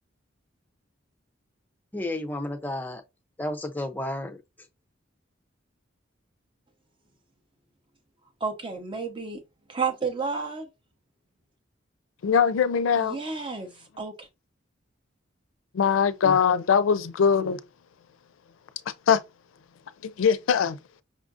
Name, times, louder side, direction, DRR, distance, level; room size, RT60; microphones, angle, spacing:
voice 1, 1.9-3.0 3.4-4.4 16.2-16.4, left 1 dB, 10° left, 0.5 m, -32 dB
voice 2, 8.4-9.4 9.7-10.7 13.0-13.7 14.0-14.3, right 5 dB, 25° right, 0.7 m, -31 dB
voice 3, 12.2-13.2 15.7-17.6 19.1-19.2 20.0-20.8, left 7 dB, 90° left, 0.4 m, -21 dB
5.5 x 2.5 x 2.4 m
head